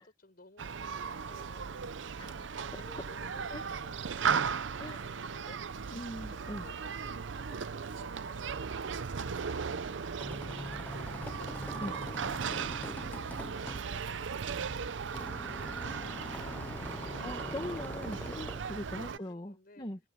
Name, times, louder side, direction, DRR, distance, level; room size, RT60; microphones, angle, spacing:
voice 1, 0.0-2.3 2.7-5.9 6.1-8.7 9.1-11.3 11.7-12.3 12.9-14.5 15.4-17.2 17.9-18.2 18.6-19.9, left 2 dB, 50° left, 5.1 m, -57 dB
Human group actions, 0.6-19.2, right 6 dB, 70° right, 0.6 m, -37 dB
sound 1, 2.1-19.3, left 4 dB, 85° left, 7.3 m, -65 dB
voice 2, 2.2-2.8 3.5-3.6 4.8-5.1 5.9-6.6 11.8-11.9 17.2-20.0, left 1 dB, 25° left, 1.6 m, -41 dB
sound 2, 9.9-18.6, left 1 dB, 10° left, 0.4 m, -44 dB
head